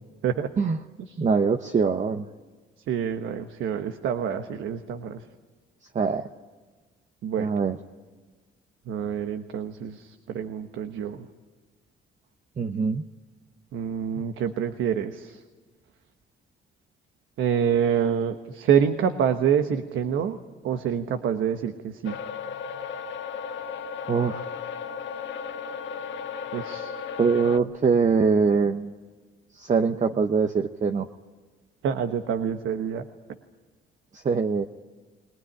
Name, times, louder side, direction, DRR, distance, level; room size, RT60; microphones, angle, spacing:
voice 1, 1.2-2.3 5.9-6.3 7.4-7.8 12.6-13.0 24.1-24.4 27.2-28.9 29.5-31.1 34.1-34.7, right 5 dB, 35° right, 6 dB, 0.9 m, -23 dB
voice 2, 2.9-5.3 7.2-7.5 8.9-11.3 13.7-15.4 17.4-20.4 20.6-22.2 26.5-26.9 31.8-33.0, right 8 dB, 80° right, 7 dB, 1.2 m, -27 dB
sound 1, 22.0-27.6, left 6 dB, 70° left, 1.4 m, -35 dB
22.0 x 19.5 x 10.0 m, 1.3 s
cardioid pair, 90°, 20 cm